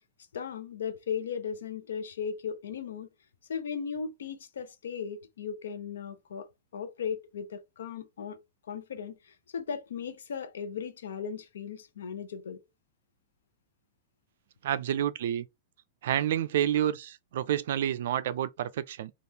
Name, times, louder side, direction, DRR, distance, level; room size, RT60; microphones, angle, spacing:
voice 1, 0.3-3.1 3.5-8.4 8.7-12.6, left 7 dB, 85° left, 0.6 m, -37 dB
voice 2, 14.6-15.5 16.0-19.1, right 10 dB, 65° right, 0.4 m, -29 dB
3.4 x 2.4 x 2.8 m
hypercardioid pair, 150°, 0 cm